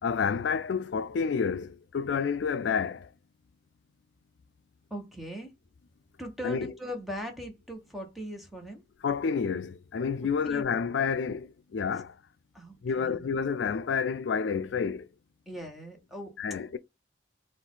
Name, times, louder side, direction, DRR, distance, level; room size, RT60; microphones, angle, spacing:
voice 1, 0.0-3.1 6.4-6.7 9.0-12.2 12.8-15.1 16.4-16.8, left 6 dB, 80° left, 0.4 m, -29 dB
voice 2, 4.9-5.5 6.2-8.8 10.4-10.8 12.5-13.3 15.5-16.3, equal, ahead, 1.1 m, -39 dB
4.2 x 2.5 x 3.8 m
head